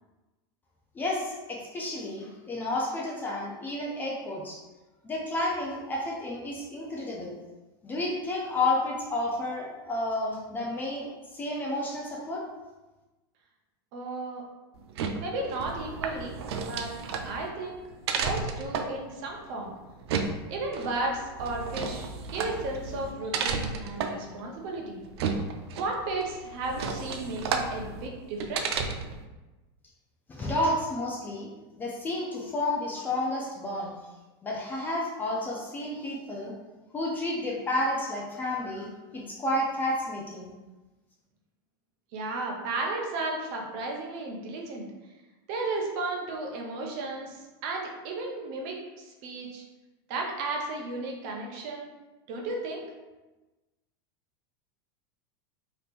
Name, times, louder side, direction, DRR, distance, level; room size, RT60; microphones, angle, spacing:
voice 1, 0.9-4.6 5.0-7.4 7.8-11.1 11.3-12.4 30.3-31.5 31.8-33.9 34.4-36.5 36.9-40.5, left 1 dB, 15° left, -3 dB, 0.4 m, -31 dB
voice 2, 13.9-14.4 15.1-16.9 17.2-17.8 18.2-19.7 20.5-25.0 25.8-28.8 42.1-44.9 45.5-49.6 50.1-51.9 52.3-52.8, right 2 dB, 50° right, 0 dB, 0.7 m, -34 dB
sound 1, 14.8-29.2, right 5 dB, 85° right, 0.4 m, -33 dB
2.8 x 2.5 x 3.4 m, 1.1 s
supercardioid pair, 160°, 13 cm